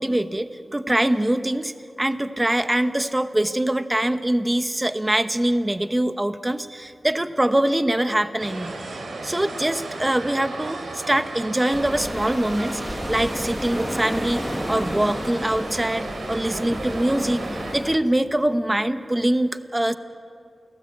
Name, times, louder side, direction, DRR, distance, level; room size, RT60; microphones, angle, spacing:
voice 1, 0.0-1.7 2.0-17.4 17.7-20.0, right 1 dB, 15° right, 11 dB, 0.9 m, -23 dB
sound 1, 8.4-17.8, right 2 dB, 85° right, 3.7 m, -34 dB
sound 2, 11.7-18.0, equal, ahead, 1.3 m, -32 dB
29.0 x 18.5 x 8.6 m, 2.6 s
wide cardioid pair, 110°, 0 cm